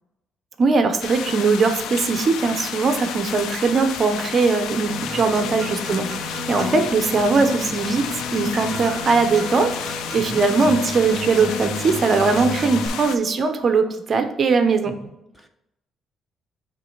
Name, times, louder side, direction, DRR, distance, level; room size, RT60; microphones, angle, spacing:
voice 1, 0.6-8.1 8.3-14.9, right 4 dB, 35° right, 7 dB, 0.6 m, -20 dB
sound 1, 1.0-13.2, left 8 dB, 80° left, 0.4 m, -32 dB
Acoustic guitar, 4.9-12.9, equal, 15° right, 1.6 m, -31 dB
voice 2, 5.0-5.6 10.2-10.4 14.8-14.9 15.3-15.5, equal, 5° left, 5 dB, 0.6 m, -38 dB
8.1 x 3.1 x 4.5 m, 0.88 s
cardioid pair, 160°, 0 cm